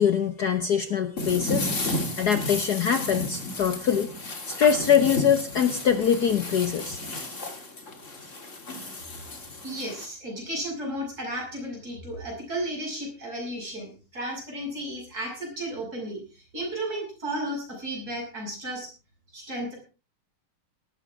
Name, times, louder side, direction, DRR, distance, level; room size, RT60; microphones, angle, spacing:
voice 1, 0.0-1.7 2.2-4.1 4.5-7.0, left 8 dB, 55° left, 9 dB, 1.4 m, -23 dB
sound 1, 1.2-10.1, left 2 dB, 35° left, 3.1 m, -33 dB
voice 2, 9.6-18.9 19.3-19.8, right 1 dB, 45° right, -1 dB, 8.3 m, -34 dB
18.0 x 14.5 x 3.6 m, 0.34 s
omnidirectional pair, 2.4 m